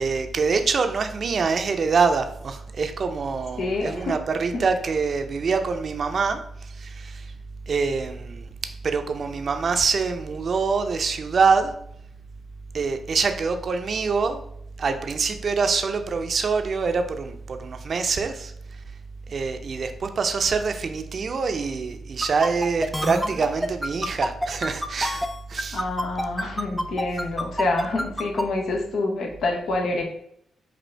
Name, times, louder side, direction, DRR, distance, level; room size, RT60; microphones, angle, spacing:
voice 1, 0.0-7.3 7.7-8.5 8.8-11.7 12.7-14.4 14.8-18.5 19.3-25.8, right 5 dB, 55° right, 7 dB, 0.5 m, -25 dB
voice 2, 3.6-4.2 4.5-4.7 25.7-30.0, left 2 dB, 70° left, 1 dB, 0.8 m, -27 dB
sound 1, 22.2-28.4, equal, 5° left, 0.6 m, -27 dB
5.1 x 2.8 x 3.3 m, 0.72 s
hypercardioid pair, 45°, 0 cm